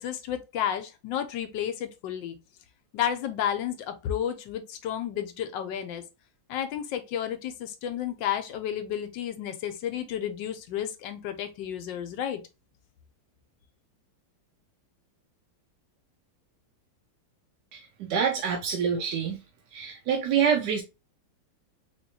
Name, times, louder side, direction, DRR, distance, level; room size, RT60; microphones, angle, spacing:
voice 1, 0.0-2.4 2.9-6.0 6.5-12.4, left 10 dB, 75° left, 1.2 m, -32 dB
voice 2, 17.7-19.4 19.7-20.8, right 7 dB, 70° right, 1.1 m, -26 dB
3.4 x 3.3 x 2.6 m
omnidirectional pair, 2.1 m